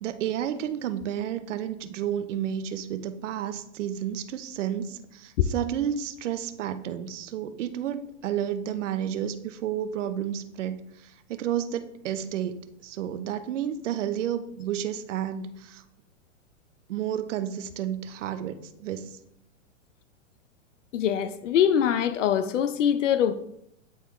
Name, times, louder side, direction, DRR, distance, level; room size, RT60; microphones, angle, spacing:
voice 1, 0.0-10.8 11.0-12.6 12.8-15.8 16.9-19.1, right 10 dB, 75° right, 10 dB, 0.7 m, -31 dB
voice 2, 20.9-23.3, left 9 dB, 75° left, 11 dB, 0.6 m, -23 dB
8.5 x 3.7 x 3.1 m, 0.76 s
hypercardioid pair, 140°, 37 cm